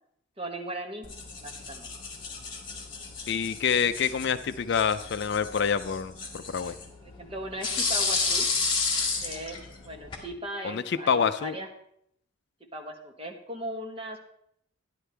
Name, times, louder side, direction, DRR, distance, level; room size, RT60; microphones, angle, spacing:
voice 1, 0.4-1.1 1.4-1.9 7.0-8.5 9.2-11.7 12.6-14.2, right 1 dB, 30° right, 3 dB, 1.3 m, -38 dB
sound 1, 1.0-10.2, left 4 dB, 25° left, 1.7 m, -32 dB
voice 2, 3.3-6.7 10.6-11.5, left 7 dB, 55° left, 12 dB, 0.4 m, -27 dB
11.0 x 11.0 x 3.3 m, 0.72 s
head